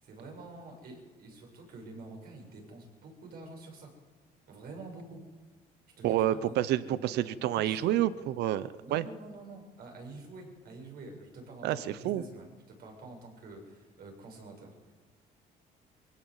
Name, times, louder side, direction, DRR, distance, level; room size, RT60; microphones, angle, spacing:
voice 1, 0.0-3.9 4.5-5.2 6.0-7.0 7.4-8.0 8.8-14.8, right 2 dB, 65° right, 2 dB, 7.0 m, -47 dB
voice 2, 6.0-9.0 11.6-12.2, right 13 dB, 80° right, 16 dB, 0.8 m, -29 dB
22.5 x 16.5 x 8.1 m, 1.4 s
cardioid pair, 110°, 17 cm